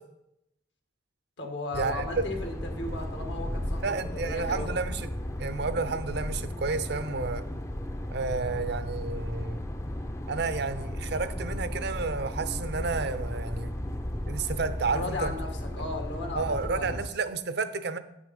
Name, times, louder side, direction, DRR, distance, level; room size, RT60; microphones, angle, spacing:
voice 1, 1.4-4.7 14.9-16.9, left 2 dB, 85° left, 3 dB, 1.8 m, -36 dB
sound 1, 1.7-17.1, left 1 dB, 15° left, 0.5 m, -35 dB
voice 2, 3.8-5.1 5.4-7.4 8.1-9.6 10.3-13.7 14.3-15.3 16.4-18.0, right 4 dB, 65° right, 11 dB, 0.6 m, -31 dB
9.2 x 6.2 x 5.4 m, 0.84 s
head